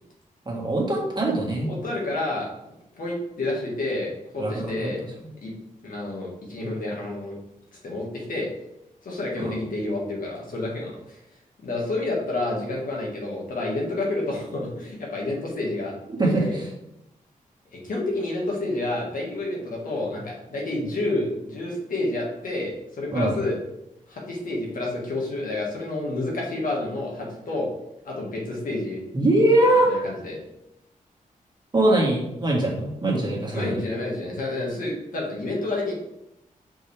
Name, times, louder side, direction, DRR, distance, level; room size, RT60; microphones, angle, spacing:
voice 1, 0.4-1.7 4.4-4.9 9.4-9.5 16.2-16.7 23.1-23.4 29.1-30.0 31.7-33.8, right 1 dB, 30° right, -2 dB, 1.8 m, -22 dB
voice 2, 1.7-2.5 2.9-5.0 5.4-5.5 5.8-7.4 7.8-8.5 9.0-11.2 11.6-15.9 16.2-16.6 17.7-23.6 24.1-27.7 28.0-29.0 29.9-30.4 33.5-35.9, left 2 dB, 75° left, -2 dB, 1.9 m, -29 dB
5.9 x 5.3 x 3.5 m, 0.85 s
wide cardioid pair, 115°, 14 cm